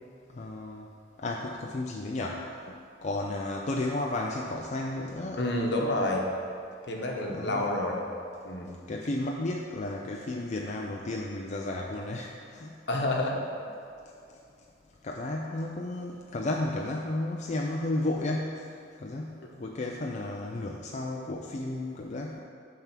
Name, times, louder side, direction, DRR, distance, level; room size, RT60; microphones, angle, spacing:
voice 1, 0.3-0.9 1.2-2.5 3.0-5.5 7.3-7.7 8.9-12.7 15.0-18.7 19.0-22.4, left 2 dB, 40° left, -1 dB, 0.4 m, -33 dB
voice 2, 5.4-6.2 6.9-8.0 8.4-8.7 12.9-13.4, left 1 dB, 65° left, 0 dB, 1.1 m, -28 dB
8.9 x 3.6 x 5.9 m, 2.5 s
head